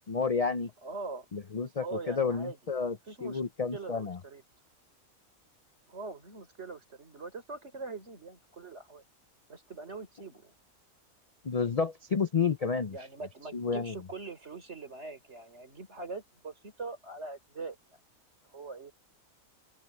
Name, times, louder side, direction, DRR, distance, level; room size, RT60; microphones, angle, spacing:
voice 1, 0.1-0.7 1.3-3.0 3.2-4.2 11.4-13.0 13.5-13.9, left 5 dB, 40° left, 0.5 m, -30 dB
voice 2, 0.8-1.3 1.8-3.4 3.7-4.4 5.9-9.0 9.5-10.5 12.9-17.8 18.4-18.9, right 3 dB, 50° right, 4.3 m, -42 dB
open air
omnidirectional pair, 1.5 m